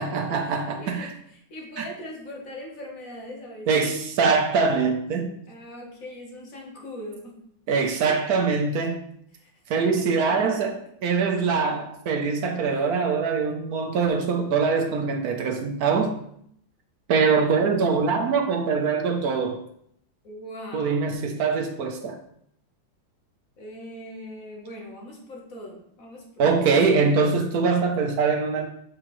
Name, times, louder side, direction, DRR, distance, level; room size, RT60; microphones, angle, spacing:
voice 1, 0.0-1.1 1.8-1.9 3.7-5.3 7.7-9.0 9.7-16.1 17.1-19.6 20.7-22.2 26.4-28.7, right 5 dB, 60° right, 4 dB, 1.1 m, -23 dB
voice 2, 0.8-3.8 5.5-7.4 9.3-10.7 12.7-12.9 20.2-21.1 23.6-26.7, left 1 dB, 50° left, -1 dB, 1.5 m, -41 dB
6.4 x 4.9 x 3.1 m, 0.70 s
omnidirectional pair, 2.1 m